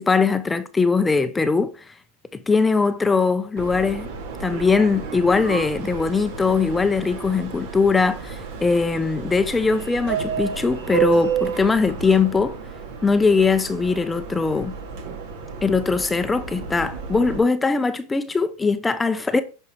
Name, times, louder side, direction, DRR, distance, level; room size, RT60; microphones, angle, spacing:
voice 1, 0.0-1.9 2.5-4.1 4.4-12.6 13.0-14.7 15.6-19.4, left 4 dB, 10° left, 0.6 m, -21 dB
Subway metro underground, 3.6-17.4, right 7 dB, 70° right, 2.5 m, -31 dB
9.4 x 5.4 x 4.6 m
supercardioid pair, 130°, 0 cm